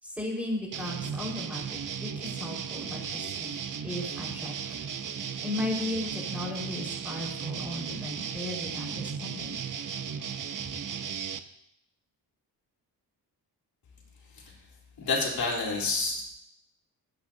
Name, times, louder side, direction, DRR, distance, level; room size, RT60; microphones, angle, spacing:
voice 1, 0.0-4.8 5.4-9.5, left 1 dB, 5° right, -3 dB, 5.1 m, -36 dB
sound 1, 0.7-11.4, right 7 dB, 55° right, 0.9 m, -36 dB
voice 2, 15.0-16.3, left 3 dB, 70° left, -3 dB, 3.9 m, -29 dB
25.0 x 9.6 x 2.9 m, 0.75 s
cardioid pair, 105°, 38 cm